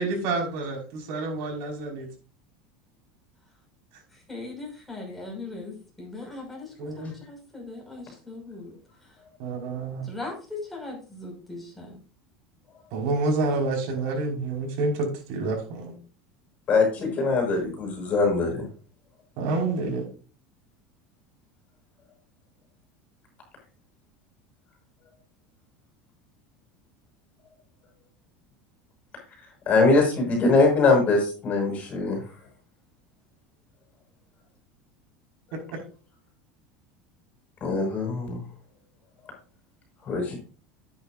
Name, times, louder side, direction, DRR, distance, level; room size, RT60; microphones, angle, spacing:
voice 1, 0.0-2.1 6.8-7.1 9.4-10.1 12.9-15.9 19.4-20.0, right 3 dB, 65° right, 1 dB, 5.1 m, -28 dB
voice 2, 4.3-8.8 9.0-9.1 10.0-12.0 17.0-17.6, left 3 dB, ahead, -2 dB, 5.7 m, -39 dB
voice 3, 16.7-18.6 29.7-32.2 37.6-38.4 40.1-40.4, left 3 dB, 35° left, 1 dB, 5.9 m, -22 dB
11.0 x 9.5 x 2.6 m, 0.37 s
supercardioid pair, 140°, 4 cm